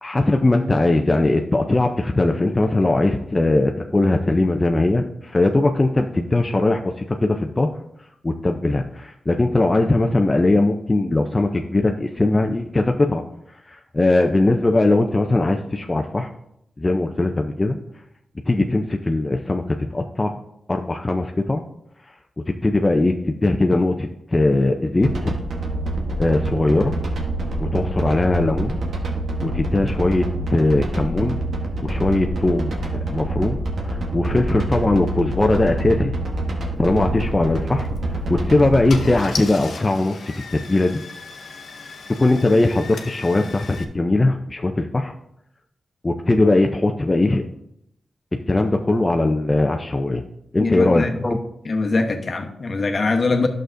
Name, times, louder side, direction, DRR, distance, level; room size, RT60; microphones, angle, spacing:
voice 1, 0.0-7.7 8.2-13.2 13.7-16.3 16.8-17.8 18.5-20.4 20.7-21.6 22.5-25.3 26.2-26.9 27.6-28.8 29.4-30.3 30.5-31.4 31.8-36.1 36.8-37.9 38.3-41.0 42.2-45.1 46.0-47.4 48.5-50.2 50.5-51.4, left 2 dB, 25° left, 3 dB, 0.5 m, -20 dB
sound 1, 25.0-39.1, right 2 dB, 75° right, 1.2 m, -26 dB
Car / Engine starting, 37.8-38.0 38.6-38.7 38.9-43.8, left 5 dB, 80° left, 0.7 m, -36 dB
voice 2, 50.6-51.2 51.6-53.5, left 3 dB, 55° left, 4 dB, 1.0 m, -22 dB
11.0 x 6.4 x 2.6 m, 0.77 s
cardioid pair, 65°, 0 cm